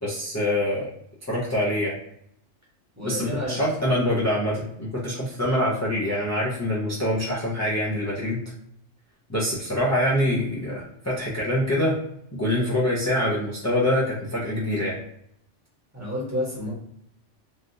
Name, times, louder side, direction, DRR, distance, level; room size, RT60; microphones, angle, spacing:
voice 1, 0.0-0.9 1.2-2.0 3.0-8.4 9.3-12.0 12.3-15.0, left 1 dB, 25° left, -7 dB, 0.3 m, -25 dB
voice 2, 3.0-3.6 15.9-16.7, left 1 dB, 15° right, -5 dB, 1.0 m, -30 dB
3.3 x 2.4 x 2.6 m, 0.72 s
omnidirectional pair, 1.3 m